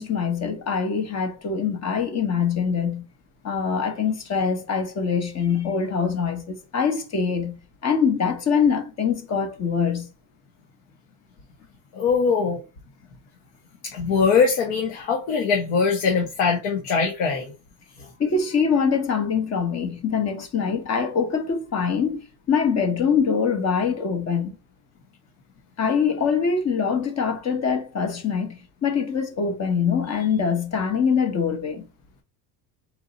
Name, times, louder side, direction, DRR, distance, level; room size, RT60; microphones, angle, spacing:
voice 1, 0.0-3.0 3.4-7.6 7.8-10.1 18.2-24.6 25.8-31.8, left 6 dB, 35° left, 1.1 m, -24 dB
voice 2, 11.9-12.6 13.8-17.5 18.0-18.1, left 5 dB, 80° left, 1.3 m, -22 dB
4.6 x 2.7 x 4.0 m
cardioid pair, 140°, 49 cm